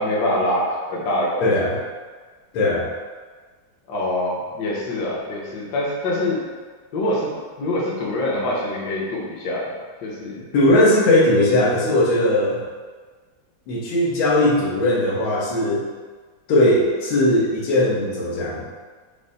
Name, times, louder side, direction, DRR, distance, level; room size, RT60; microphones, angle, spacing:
voice 1, 0.0-1.4 3.9-6.4 6.9-7.3 7.6-9.7 10.0-10.4, left 1 dB, 60° left, -5 dB, 1.3 m, -24 dB
voice 2, 1.4-1.8 2.5-2.9 10.5-12.6 13.7-15.9 16.5-18.6, left 1 dB, 85° left, -6 dB, 1.7 m, -18 dB
5.2 x 2.1 x 3.9 m, 1.5 s
omnidirectional pair, 2.2 m